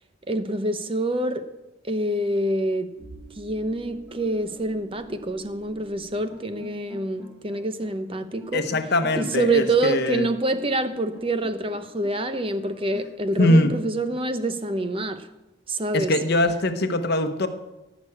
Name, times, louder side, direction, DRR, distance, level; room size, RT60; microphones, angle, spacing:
voice 1, 0.3-1.5 1.8-2.9 3.4-8.6 9.1-15.3 15.7-16.1, right 2 dB, 25° right, 0.9 m, -26 dB
sound 1, 3.0-13.2, equal, 10° right, 3.9 m, -45 dB
voice 2, 8.5-10.3 13.4-13.7 15.9-17.5, left 1 dB, 55° left, 1.1 m, -22 dB
16.5 x 6.2 x 8.7 m
head